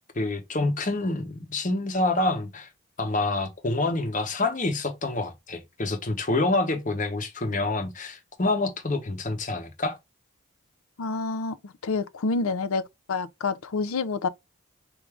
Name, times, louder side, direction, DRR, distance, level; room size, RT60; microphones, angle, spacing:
voice 1, 0.1-2.7 3.0-10.0, left 2 dB, 35° left, 0.8 m, -27 dB
voice 2, 11.0-11.6 11.8-12.8 13.1-14.3, left 4 dB, 85° left, 0.5 m, -27 dB
4.7 x 2.6 x 3.3 m
head